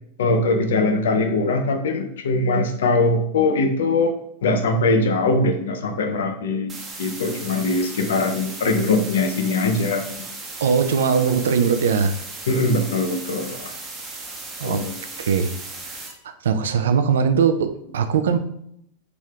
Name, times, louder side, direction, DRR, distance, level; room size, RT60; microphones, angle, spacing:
voice 1, 0.2-10.1 12.5-13.7 14.6-15.0, left 2 dB, 60° left, 5 dB, 0.5 m, -21 dB
sound 1, 6.7-16.1, right 3 dB, 20° right, 0.7 m, -36 dB
voice 2, 10.6-12.1 14.6-14.8 15.2-15.5 16.4-18.4, right 6 dB, 60° right, 9 dB, 0.3 m, -20 dB
3.4 x 2.7 x 3.3 m, 0.73 s
figure-of-eight pair, 90°, 0 cm